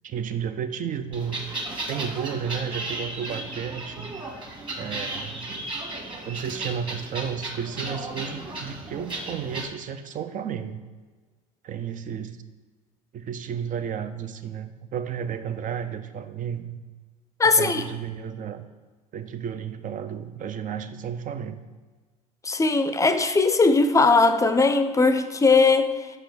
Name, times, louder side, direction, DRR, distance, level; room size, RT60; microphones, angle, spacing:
voice 1, 0.0-1.4 1.9-4.1 4.8-5.5 6.3-10.8 11.6-12.4 13.1-16.8 17.4-18.7 19.1-21.6, right 8 dB, 40° right, 0.7 m, -32 dB
sound 1, 1.1-9.7, right 2 dB, 25° right, 1.7 m, -35 dB
voice 2, 17.4-17.8 22.4-26.1, left 3 dB, 15° left, 0.6 m, -19 dB
5.5 x 4.9 x 6.0 m
hypercardioid pair, 70°, 20 cm